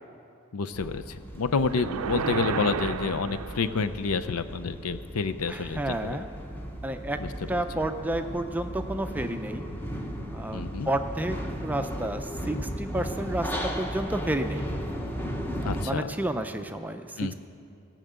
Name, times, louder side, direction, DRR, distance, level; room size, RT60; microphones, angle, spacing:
voice 1, 0.5-6.2 7.2-7.3 10.5-10.9 15.6-16.1 17.2-17.3, left 4 dB, 90° left, 10 dB, 0.6 m, -29 dB
sound 1, 0.7-15.9, equal, 10° left, 0.9 m, -36 dB
sound 2, 1.7-4.0, right 6 dB, 90° right, 0.5 m, -32 dB
voice 2, 5.5-6.3 6.8-7.2 7.5-9.6 10.3-11.4 11.6-14.7 15.6-17.3, right 1 dB, 10° right, 7 dB, 0.5 m, -31 dB
17.5 x 6.4 x 8.0 m, 2.6 s
head